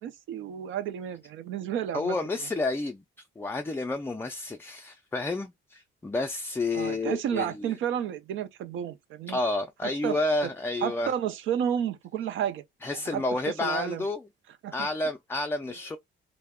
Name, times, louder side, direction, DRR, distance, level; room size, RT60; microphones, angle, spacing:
voice 1, 0.0-2.2 6.7-9.4 9.8-10.2 10.8-12.6 12.9-14.0 14.6-14.9, right 9 dB, 80° right, 0.5 m, -31 dB
voice 2, 1.9-3.0 3.4-7.7 9.3-11.1 12.8-14.2 14.7-16.0, left 2 dB, 10° left, 0.3 m, -30 dB
2.1 x 2.0 x 3.5 m
cardioid pair, 90°, 20 cm